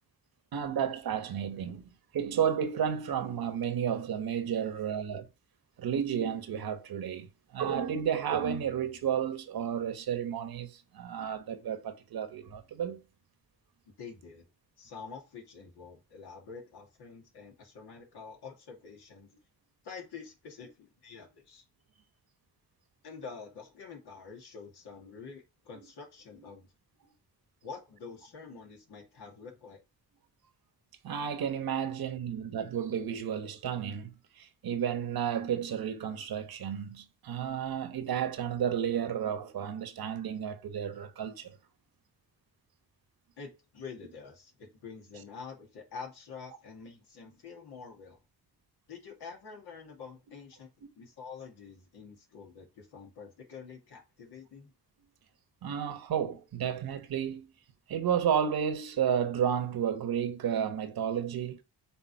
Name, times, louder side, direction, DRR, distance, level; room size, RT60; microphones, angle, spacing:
voice 1, 0.5-1.8 2.1-5.3 5.8-13.0 31.0-41.6 55.6-57.5 57.9-61.6, right 8 dB, 65° right, 1.2 m, -32 dB
voice 2, 14.0-14.5 14.8-19.3 19.8-21.6 23.0-26.7 27.6-29.8 43.4-48.2 48.9-50.7 51.0-54.7, left 5 dB, 80° left, 2.2 m, -47 dB
5.8 x 3.6 x 4.7 m
cardioid pair, 65°, 38 cm